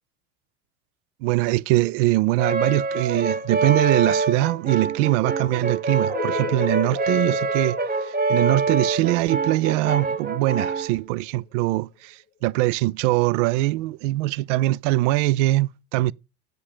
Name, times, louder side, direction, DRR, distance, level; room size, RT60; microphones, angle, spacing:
voice 1, 1.2-16.1, right 18 dB, 55° right, 0.5 m, -22 dB
Brass instrument, 2.4-10.9, right 4 dB, 20° right, 1.1 m, -25 dB
sound 1, 6.1-11.5, left 7 dB, 15° left, 1.2 m, -35 dB
9.7 x 6.7 x 5.1 m
hypercardioid pair, 80°, 45 cm